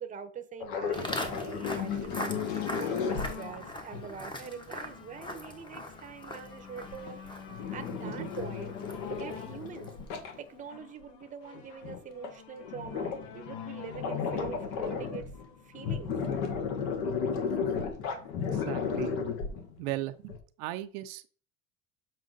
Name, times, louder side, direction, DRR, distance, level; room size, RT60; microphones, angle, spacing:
voice 1, 0.0-7.2 7.7-8.8 9.1-9.9 10.4-15.3 15.6-16.2, right 6 dB, 20° right, 0.9 m, -44 dB
sound 1, 0.6-4.2 6.8-10.4 11.2-11.3 11.5-12.0 12.2-12.3 12.6-13.5 13.8-15.5 15.7-19.9 20.3-20.4, left 6 dB, 70° left, 1.8 m, -34 dB
Walk footsteps, 0.9-10.1, left 1 dB, 10° left, 1.0 m, -42 dB
sound 2, 2.5-16.0 16.8-16.9, left 7 dB, 85° left, 1.7 m, -48 dB
voice 2, 18.5-19.1 19.8-20.3 20.6-21.3, right 15 dB, 70° right, 0.7 m, -37 dB
7.5 x 4.8 x 4.0 m
cardioid pair, 150°, 39 cm